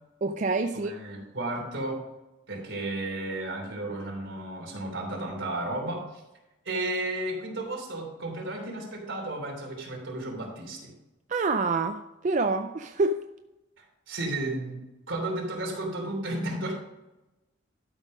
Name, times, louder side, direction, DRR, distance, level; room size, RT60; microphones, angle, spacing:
voice 1, 0.2-0.9 11.3-13.2, right 3 dB, 40° right, 7 dB, 0.3 m, -27 dB
voice 2, 0.7-2.0 2.5-6.2 6.6-10.9 13.8-16.7, right 2 dB, 75° right, 0 dB, 3.1 m, -33 dB
12.0 x 5.4 x 5.1 m, 0.98 s
head